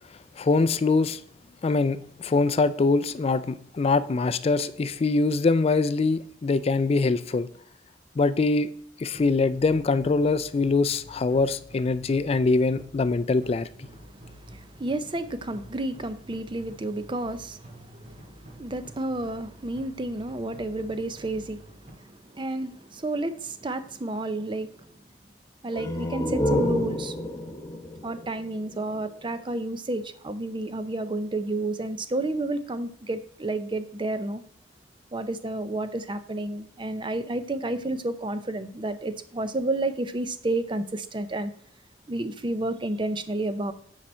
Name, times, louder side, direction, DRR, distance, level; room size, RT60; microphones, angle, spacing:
voice 1, 0.4-1.2 1.6-7.5 8.2-8.7 9.0-13.7, left 3 dB, 35° left, 0.3 m, -23 dB
sound 1, 9.1-21.9, equal, 45° right, 3.4 m, -48 dB
voice 2, 14.2-24.9 25.6-27.1 28.0-34.4 35.1-41.5 42.1-43.7, right 2 dB, 25° right, 0.6 m, -31 dB
sound 2, 25.7-29.2, left 1 dB, 20° left, 0.9 m, -29 dB
8.6 x 4.9 x 4.3 m
head